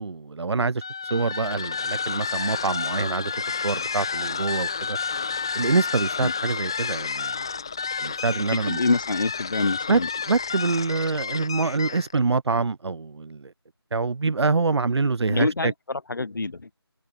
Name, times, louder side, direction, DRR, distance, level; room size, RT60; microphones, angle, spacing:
voice 1, 0.0-5.0 5.5-7.3 8.0-8.8 9.9-10.0 10.3-13.5 13.9-15.7, right 4 dB, 80° right, 0.5 m, -25 dB
sound 1, 0.8-12.2, left 5 dB, 10° left, 0.6 m, -30 dB
voice 2, 8.5-10.1 15.3-16.6, left 3 dB, 50° left, 0.9 m, -26 dB
figure-of-eight pair, 165°, 14 cm